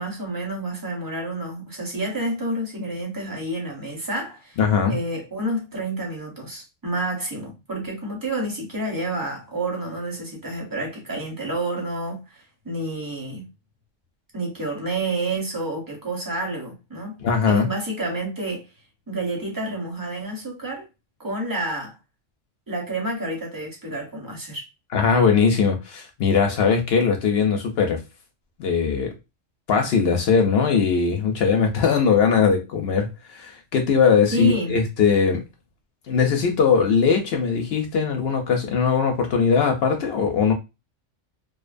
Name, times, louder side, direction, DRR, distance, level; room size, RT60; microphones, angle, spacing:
voice 1, 0.0-4.6 4.9-13.5 14.3-17.2 17.5-18.7 19.1-20.9 21.2-22.0 22.7-24.6 34.3-34.8, right 2 dB, 20° right, 0.8 m, -29 dB
voice 2, 4.6-5.0 17.2-17.7 24.9-28.0 28.6-29.1 29.7-35.4 36.1-40.5, left 6 dB, 65° left, 0.7 m, -20 dB
2.5 x 2.2 x 2.5 m
omnidirectional pair, 1.3 m